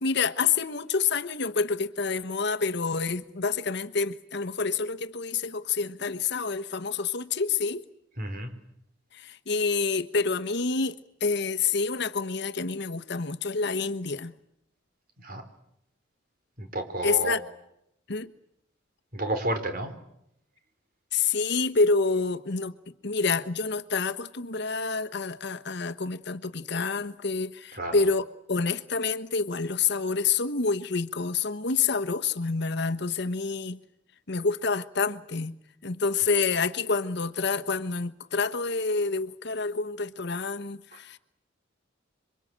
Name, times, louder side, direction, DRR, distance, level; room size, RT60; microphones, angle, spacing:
voice 1, 0.0-7.8 9.1-14.3 17.0-17.4 18.1-18.3 21.1-22.8 23.0-33.8 34.3-41.2, left 4 dB, 60° left, 1.2 m, -28 dB
voice 2, 8.2-8.5 15.2-15.4 16.6-17.4 19.1-19.9 27.7-28.1 40.9-41.2, right 1 dB, 50° right, 4.0 m, -31 dB
27.0 x 24.0 x 8.8 m
head